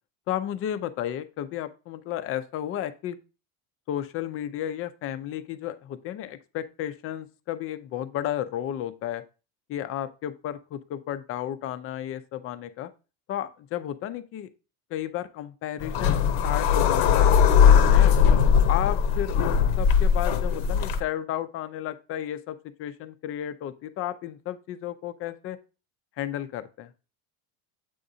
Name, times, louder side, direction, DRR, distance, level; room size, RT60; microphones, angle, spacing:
voice 1, 0.3-3.2 3.9-9.2 9.7-12.9 13.3-14.5 14.9-17.3 17.9-18.2 18.5-25.6 26.2-26.9, left 11 dB, 35° left, 12 dB, 0.4 m, -33 dB
sound 1, 15.8-21.0, left 7 dB, 75° left, 0.9 m, -19 dB
7.7 x 4.9 x 2.7 m, 0.32 s
cardioid pair, 150°, 40 cm